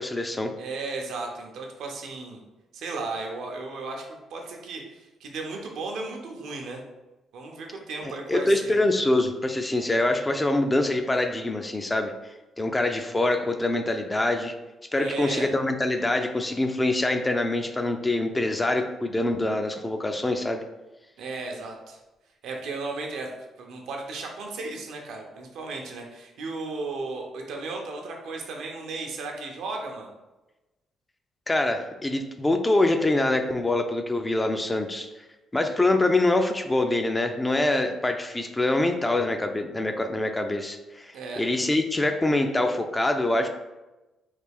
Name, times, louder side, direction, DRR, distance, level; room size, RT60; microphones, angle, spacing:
voice 1, 0.0-0.5 8.0-12.1 12.6-14.5 14.9-20.6 31.5-35.1 35.5-43.5, left 2 dB, 15° left, 6 dB, 0.3 m, -25 dB
voice 2, 0.6-2.4 2.7-6.8 7.3-8.8 14.9-15.5 21.2-22.0 22.4-23.3 23.6-30.1 41.1-41.4, right 3 dB, 80° right, 1 dB, 0.6 m, -35 dB
3.3 x 2.3 x 3.4 m, 1.1 s
cardioid pair, 90°, 0 cm